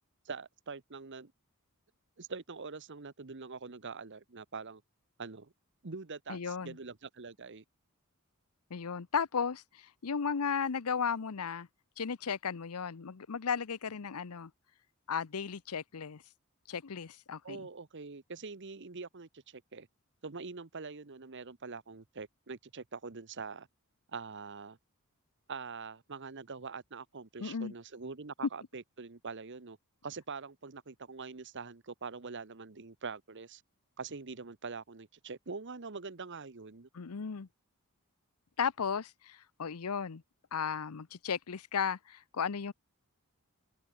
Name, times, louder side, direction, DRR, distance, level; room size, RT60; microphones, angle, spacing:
voice 1, 0.2-1.3 2.2-4.8 5.2-5.5 5.8-7.6 17.4-19.9 20.2-23.7 24.1-24.8 25.5-29.8 30.0-33.6 34.0-36.9, right 4 dB, 55° right, 1.0 m, -44 dB
voice 2, 6.3-6.7 8.7-9.6 10.0-11.7 12.0-14.5 15.1-16.2 16.7-17.6 27.4-27.7 36.9-37.5 38.6-40.2 40.5-42.7, left 6 dB, 80° left, 0.7 m, -35 dB
open air
head